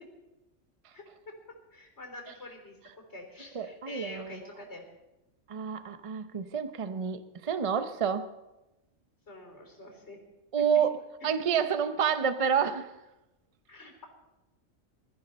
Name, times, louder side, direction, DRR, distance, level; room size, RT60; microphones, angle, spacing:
voice 1, 1.7-2.8 3.1-4.8 9.3-10.2 11.2-11.4 13.7-14.1, left 2 dB, 55° left, 2 dB, 4.0 m, -46 dB
voice 2, 3.5-4.4 5.5-8.3 10.5-11.0 11.2-12.9, right 7 dB, 30° right, 10 dB, 0.7 m, -29 dB
21.5 x 14.5 x 4.3 m, 0.99 s
omnidirectional pair, 1.3 m